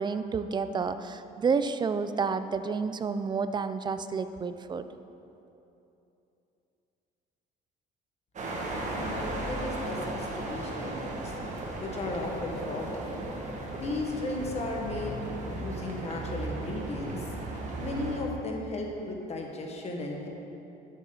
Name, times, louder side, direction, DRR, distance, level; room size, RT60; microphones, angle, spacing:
voice 1, 0.0-4.9, right 5 dB, 25° right, 11 dB, 0.4 m, -30 dB
sound 1, 8.4-18.2, right 2 dB, 45° right, 1.6 m, -36 dB
voice 2, 8.9-11.3 11.8-13.3 13.7-17.3 17.8-20.3, left 2 dB, 40° left, 0 dB, 1.6 m, -35 dB
11.5 x 7.3 x 4.0 m, 2.9 s
cardioid pair, 110°, 17 cm